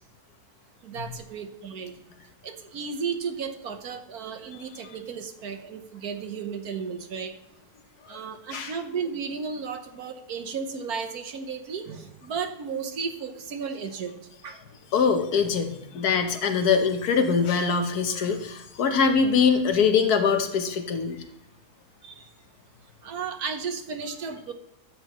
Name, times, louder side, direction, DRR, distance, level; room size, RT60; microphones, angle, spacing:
voice 1, 0.8-1.9 2.4-7.3 8.1-14.1 14.4-14.6 22.0-22.2 23.0-24.5, right 6 dB, 75° right, 7 dB, 1.4 m, -34 dB
voice 2, 14.9-21.2, left 6 dB, 75° left, 7 dB, 1.5 m, -23 dB
12.5 x 7.9 x 3.0 m, 0.88 s
omnidirectional pair, 1.6 m